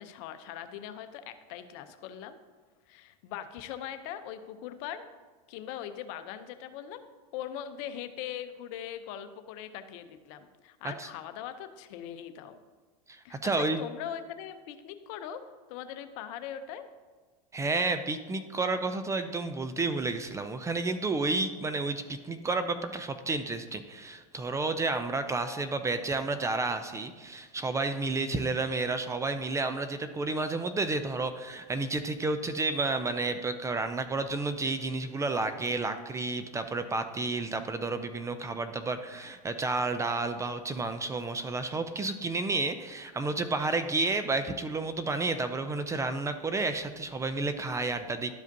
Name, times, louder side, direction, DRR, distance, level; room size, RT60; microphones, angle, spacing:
voice 1, 0.0-2.4 2.9-5.1 5.5-7.0 7.3-12.6 13.2-15.4 15.7-16.9, left 10 dB, 60° left, 10 dB, 0.7 m, -41 dB
voice 2, 13.1-13.8 17.5-48.3, right 3 dB, 15° right, 9 dB, 0.4 m, -31 dB
12.0 x 4.9 x 2.7 m, 1.4 s
hypercardioid pair, 110°, 20 cm